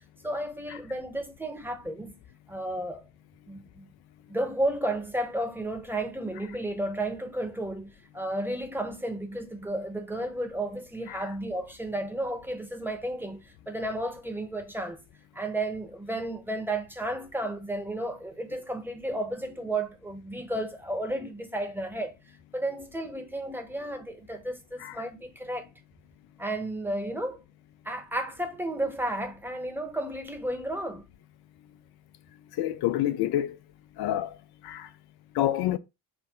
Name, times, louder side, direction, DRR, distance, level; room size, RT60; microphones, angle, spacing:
voice 1, 0.2-2.2 2.5-3.0 3.5-3.9 4.3-15.0 15.3-22.1 22.5-25.7 26.4-27.4 27.8-31.0, right 1 dB, 5° right, 1.0 m, -33 dB
voice 2, 32.6-33.6 34.0-34.3 34.6-34.9 35.3-35.8, left 13 dB, 55° left, 0.7 m, -27 dB
5.8 x 2.2 x 3.6 m
hypercardioid pair, 50°, 47 cm